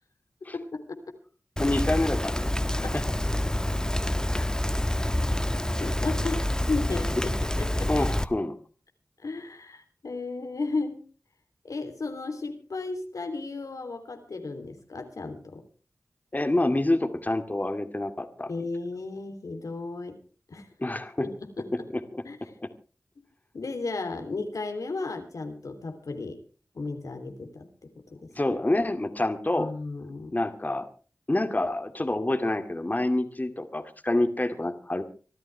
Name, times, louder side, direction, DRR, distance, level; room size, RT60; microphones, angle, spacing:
voice 1, 1.6-2.5 2.8-3.1 4.3-4.5 7.9-8.5 16.3-18.5 20.8-21.3 21.7-21.8 22.1-22.2 22.6-22.7 28.3-29.7 30.3-30.9 31.3-35.0, left 1 dB, 30° left, 7 dB, 2.3 m, -27 dB
Rain, 1.6-8.2, left 1 dB, 10° left, 1.3 m, -27 dB
voice 2, 5.8-7.9 9.2-11.0 11.6-15.6 18.5-20.2 20.5-20.7 21.2-21.9 22.2-22.4 23.5-26.4 26.7-27.7 28.1-28.3 29.6-30.4, left 3 dB, 85° left, 6 dB, 3.2 m, -34 dB
25.5 x 13.0 x 3.4 m, 0.37 s
cardioid pair, 45°, 6 cm